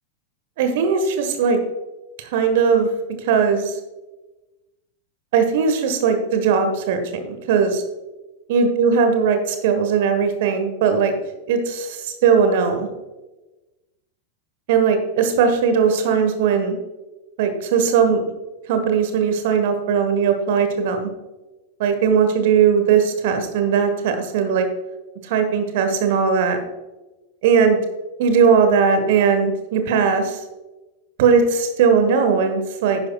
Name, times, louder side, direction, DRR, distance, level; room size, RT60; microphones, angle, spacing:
voice 1, 0.6-1.6 2.2-2.9 3.2-3.7 5.3-7.8 8.5-11.1 11.5-12.9 14.7-16.8 17.4-18.2 18.7-21.1 21.8-24.6 25.2-26.6 27.4-27.8 28.2-30.4 31.2-33.0, right 6 dB, 50° right, 7 dB, 1.4 m, -18 dB
10.5 x 10.0 x 2.4 m, 1.1 s
figure-of-eight pair, 90°, 0 cm